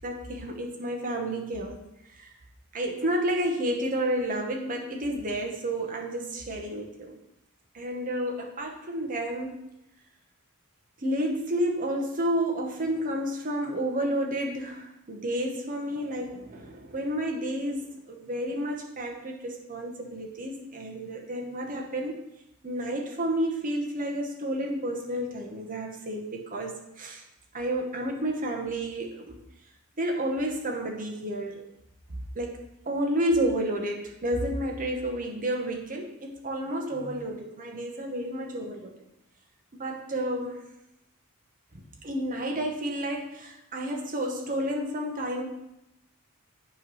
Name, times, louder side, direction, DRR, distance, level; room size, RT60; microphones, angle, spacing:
voice 1, 0.0-1.8 2.1-2.3 2.7-7.2 7.7-9.6 11.0-22.2 22.6-27.2 27.5-29.4 30.0-31.6 32.3-32.6 32.9-38.9 39.7-40.6 41.7-45.4, right 1 dB, 35° right, 1 dB, 1.0 m, -31 dB
8.6 x 3.2 x 5.6 m, 0.86 s
head